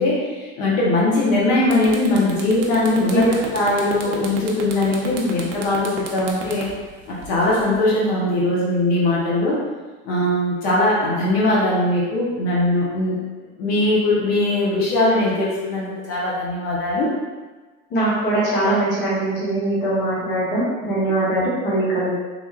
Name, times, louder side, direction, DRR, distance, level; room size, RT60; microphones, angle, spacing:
voice 1, 0.0-6.7 7.1-9.6 10.0-13.2 13.6-17.1, left 2 dB, 65° left, -6 dB, 1.1 m, -20 dB
sound 1, 1.2-1.3 1.6-7.7, right 6 dB, 55° right, 0.6 m, -33 dB
voice 2, 17.9-22.1, right 2 dB, 35° left, -8 dB, 1.0 m, -21 dB
3.4 x 3.0 x 2.4 m, 1.3 s
cardioid pair, 170°, 32 cm